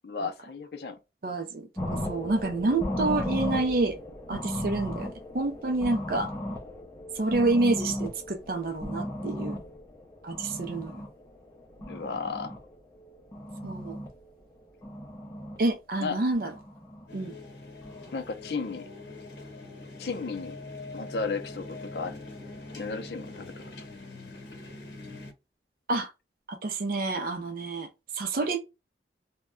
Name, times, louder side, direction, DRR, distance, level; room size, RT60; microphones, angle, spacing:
voice 1, 0.0-1.0 11.9-12.6 16.0-16.2 18.1-18.8 20.0-20.6 20.9-22.2 22.8-23.5, left 4 dB, 65° left, 0.5 m, -34 dB
voice 2, 1.2-4.0 4.3-6.3 7.1-9.6 10.2-11.0 13.6-14.0 15.6-16.5 17.1-17.3 25.9-26.1 26.5-27.9 28.1-28.6, right 2 dB, 55° right, 0.4 m, -28 dB
sound 1, 1.8-11.1 11.5-12.6 13.1-14.1 14.8-15.6 16.3-17.1 17.8-18.1, left 1 dB, 15° left, 0.6 m, -35 dB
sound 2, 17.1-25.3, left 2 dB, 90° left, 0.9 m, -43 dB
2.2 x 2.1 x 3.6 m
head